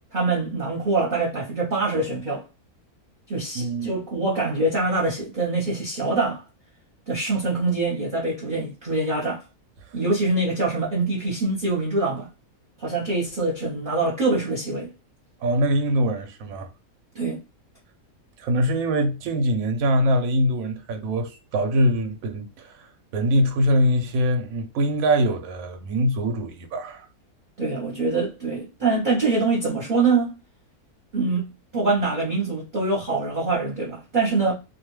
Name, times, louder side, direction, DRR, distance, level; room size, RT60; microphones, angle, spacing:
voice 1, 0.1-2.4 3.3-6.4 7.1-9.4 9.9-12.3 12.8-14.9 17.1-17.4 27.6-30.3 31.1-34.5, right 3 dB, 40° right, 0.9 m, -24 dB
voice 2, 3.5-3.9 15.4-16.7 18.4-22.9 23.1-27.1, equal, 70° right, 1.0 m, -23 dB
2.5 x 2.3 x 3.1 m
omnidirectional pair, 1.6 m